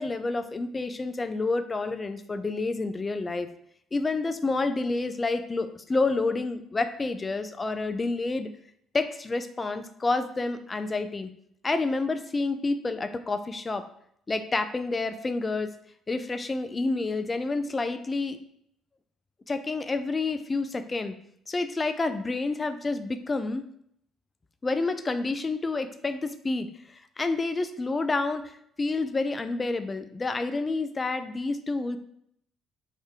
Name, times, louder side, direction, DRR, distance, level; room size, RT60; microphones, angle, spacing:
voice 1, 0.0-3.5 3.9-8.5 8.9-11.3 11.6-13.8 14.3-15.7 16.1-18.4 19.5-21.1 21.5-23.6 24.6-32.0, left 3 dB, 30° left, 10 dB, 0.4 m, -29 dB
3.6 x 2.7 x 3.3 m, 0.70 s
hypercardioid pair, 60°, 0 cm